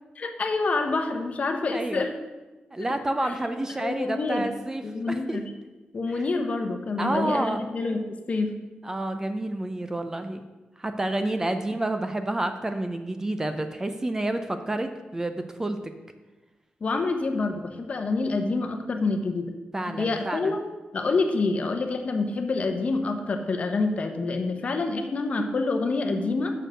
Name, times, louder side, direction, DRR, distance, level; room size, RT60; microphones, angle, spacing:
voice 1, 0.2-2.1 3.2-3.3 3.6-4.5 4.8-5.5 5.9-8.5 16.8-19.5 20.0-26.5, left 3 dB, 45° left, 5 dB, 0.8 m, -27 dB
voice 2, 1.7-2.1 2.7-5.4 6.1-6.2 7.0-7.6 8.8-10.4 10.8-15.9 19.7-20.6, right 1 dB, 15° right, 8 dB, 0.4 m, -29 dB
6.5 x 6.4 x 6.4 m, 1.2 s
wide cardioid pair, 170°, 3 cm